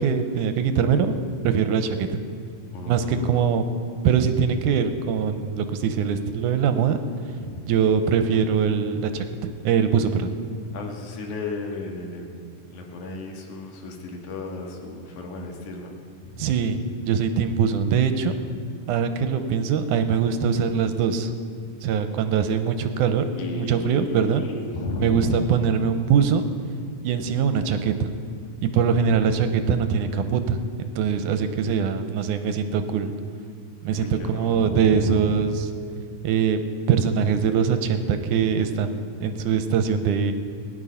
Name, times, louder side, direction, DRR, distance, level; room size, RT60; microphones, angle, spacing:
voice 1, 0.0-2.2 2.9-3.6 4.0-7.0 7.6-10.3 16.4-18.3 18.9-21.3 21.8-23.2 23.5-24.4 25.0-26.5 27.0-28.1 28.6-33.1 33.8-35.5 36.2-36.6 36.9-40.3, right 7 dB, 85° right, 8 dB, 2.3 m, -22 dB
voice 2, 2.7-3.4 7.4-7.6 10.7-15.9 16.2-16.6 23.4-25.4 28.7-29.2 33.9-35.2, left 2 dB, 75° left, 0 dB, 3.0 m, -34 dB
17.5 x 10.5 x 5.6 m, 2.4 s
omnidirectional pair, 3.5 m